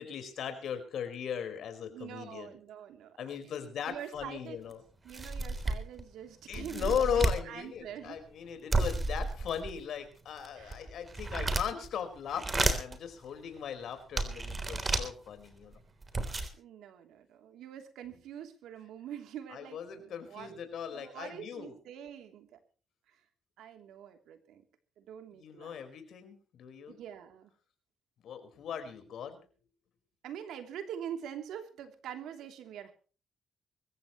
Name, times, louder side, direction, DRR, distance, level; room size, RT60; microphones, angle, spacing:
voice 1, 0.0-2.6 3.2-4.8 6.5-15.8 19.5-21.8 25.3-27.0 28.2-29.4, left 8 dB, 70° left, 8 dB, 4.7 m, -38 dB
voice 2, 1.9-3.2 3.9-4.6 5.0-8.2 10.6-10.8 16.6-20.6 20.9-22.6 23.1-23.2 23.6-24.6 25.0-25.8 26.9-27.5 30.2-32.9, right 9 dB, 80° right, 6 dB, 3.1 m, -45 dB
sound 1, 4.2-4.3 4.7-4.8 5.1-6.0 6.5-7.4 8.7-9.8 10.4-11.9 12.3-13.0 13.6-13.7 14.2-15.1 15.7-15.8 16.0-16.5, right 2 dB, 25° right, 3.5 m, -31 dB
24.5 x 14.5 x 3.1 m, 0.39 s
cardioid pair, 90°, 0 cm